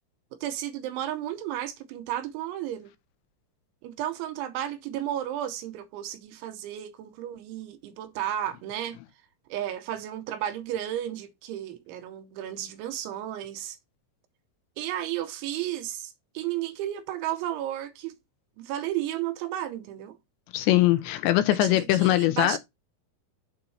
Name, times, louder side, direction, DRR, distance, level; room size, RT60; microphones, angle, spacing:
voice 1, 0.4-2.9 3.8-9.0 9.5-13.8 14.8-18.2 18.6-20.2 21.6-22.6, right 12 dB, 90° right, 3.1 m, -33 dB
voice 2, 20.5-22.6, left 15 dB, 80° left, 2.7 m, -22 dB
7.2 x 6.2 x 3.0 m
omnidirectional pair, 5.5 m